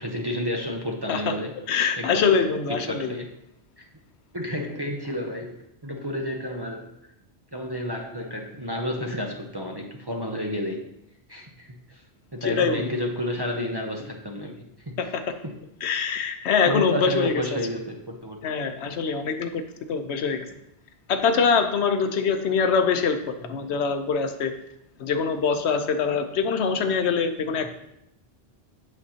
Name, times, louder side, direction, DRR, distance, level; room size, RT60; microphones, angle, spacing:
voice 1, 0.0-1.5 2.0-2.3 2.9-3.3 3.8-3.9 4.3-5.6 5.8-6.9 7.5-10.8 11.3-12.0 12.3-14.6 15.4-15.5 16.7-18.4, left 1 dB, 25° right, 0 dB, 0.6 m, -31 dB
voice 2, 1.7-3.1 12.4-13.0 15.0-15.2 15.8-17.6 18.4-19.6 19.9-20.5 21.1-24.6 25.0-27.7, left 5 dB, 75° left, 8 dB, 0.9 m, -24 dB
7.9 x 6.2 x 2.8 m, 0.79 s
omnidirectional pair, 1.1 m